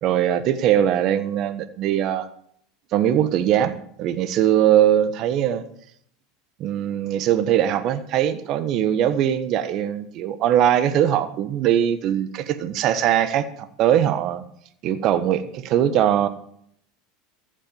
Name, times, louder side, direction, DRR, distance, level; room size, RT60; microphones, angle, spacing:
voice 1, 0.0-2.3 2.9-5.6 6.6-14.4 14.8-16.3, right 10 dB, 50° right, 13 dB, 1.4 m, -21 dB
14.5 x 9.1 x 7.1 m, 0.65 s
hypercardioid pair, 90°, 0 cm